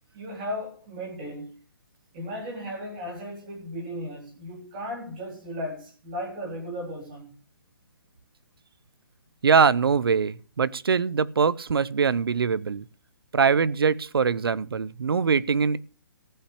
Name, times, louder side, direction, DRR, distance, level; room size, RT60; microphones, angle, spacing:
voice 1, 0.1-1.6 2.1-7.3, equal, 20° right, 4.0 m, -36 dB
voice 2, 9.4-12.8 13.3-15.8, right 6 dB, 85° right, 0.8 m, -22 dB
15.0 x 5.7 x 8.3 m
hypercardioid pair, 175°, 12 cm